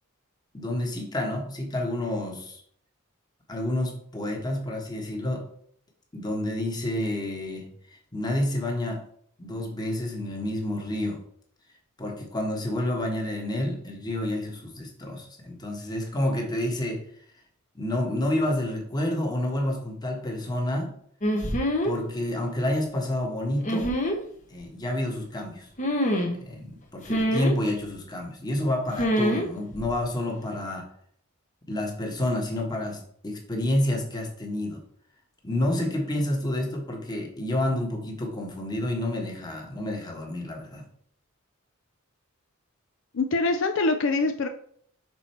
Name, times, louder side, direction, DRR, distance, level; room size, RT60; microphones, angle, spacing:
voice 1, 0.5-2.6 3.5-5.5 6.1-9.0 9.4-11.2 12.0-17.0 17.7-20.9 21.8-23.9 24.5-25.7 26.4-30.9 31.7-34.8 35.4-40.8, left 1 dB, 20° left, 1 dB, 1.4 m, -29 dB
sound 1, 21.2-22.0 23.6-24.2 25.8-26.4 27.1-27.6 29.0-29.5 29.7-30.0, equal, 35° left, 1.0 m, -25 dB
voice 2, 43.1-44.5, left 3 dB, 60° left, 6 dB, 0.5 m, -24 dB
6.1 x 4.3 x 4.4 m, 0.63 s
head